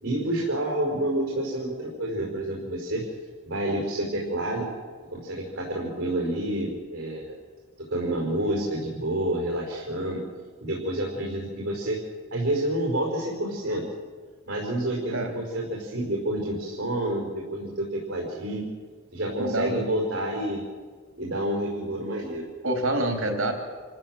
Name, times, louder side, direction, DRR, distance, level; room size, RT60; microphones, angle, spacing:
voice 1, 0.0-3.1 3.5-4.7 5.1-7.4 7.8-10.2 10.6-12.0 12.3-13.9 14.5-18.7 19.1-20.6 21.2-22.5, right 1 dB, 50° right, -2 dB, 4.9 m, -29 dB
voice 2, 19.4-19.8 22.6-23.5, right 1 dB, 70° right, 3 dB, 3.2 m, -26 dB
27.0 x 14.5 x 7.7 m, 1.5 s
head